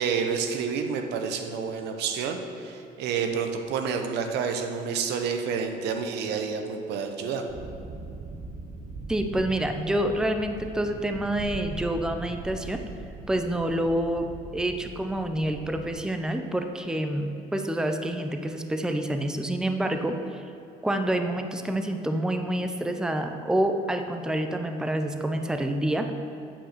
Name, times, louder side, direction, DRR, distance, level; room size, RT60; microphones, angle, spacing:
voice 1, 0.0-7.4, right 6 dB, 80° right, 6 dB, 0.9 m, -29 dB
sound 1, 7.5-15.9, right 3 dB, 45° right, 1.1 m, -40 dB
voice 2, 9.1-12.8 13.3-14.3 14.5-20.5 20.8-26.1, right 1 dB, 5° right, 6 dB, 0.5 m, -27 dB
8.8 x 5.2 x 6.6 m, 2.7 s
cardioid pair, 110°, 17 cm